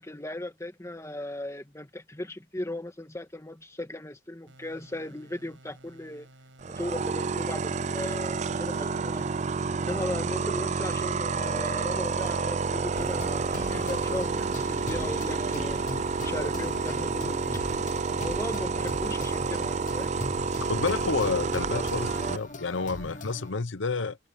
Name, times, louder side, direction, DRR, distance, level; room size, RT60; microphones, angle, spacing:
voice 1, 0.0-6.3 6.6-9.3 9.8-15.8 16.2-17.6 18.1-20.1, left 1 dB, 15° left, 1.7 m, -37 dB
sound 1, 4.5-23.6, right 1 dB, 85° right, 7.4 m, -54 dB
sound 2, 6.6-22.4, right 4 dB, 35° right, 0.5 m, -29 dB
sound 3, 12.9-23.5, left 2 dB, 40° left, 1.3 m, -40 dB
voice 2, 20.6-24.2, left 4 dB, 80° left, 0.8 m, -30 dB
head